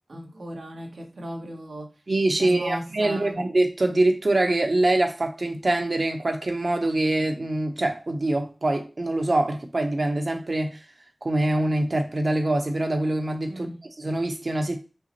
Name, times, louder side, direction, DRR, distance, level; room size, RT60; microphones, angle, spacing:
voice 1, 0.1-1.9 2.4-3.5 13.5-13.9, equal, 85° right, 1.0 m, -36 dB
voice 2, 2.1-10.8 11.2-13.7 14.0-14.8, right 2 dB, 60° right, 0.8 m, -24 dB
5.5 x 2.1 x 2.9 m
cardioid pair, 40°, 0 cm